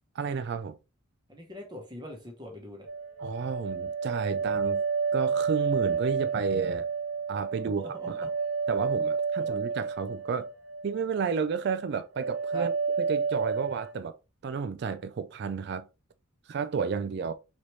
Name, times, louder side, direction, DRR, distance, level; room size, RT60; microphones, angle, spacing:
voice 1, 0.2-0.8 3.2-4.8 5.1-6.9 7.3-8.3 8.7-10.5 10.8-12.7 13.0-14.2 14.4-15.9 16.5-17.3, right 5 dB, 50° right, 0.3 m, -32 dB
voice 2, 1.3-2.9 7.6-8.3 9.4-9.5 12.5-12.7, equal, 20° right, 0.9 m, -42 dB
sound 1, 2.9-11.0 11.3-11.9 12.2-13.9, right 5 dB, 70° right, 1.0 m, -30 dB
4.0 x 3.1 x 3.1 m
head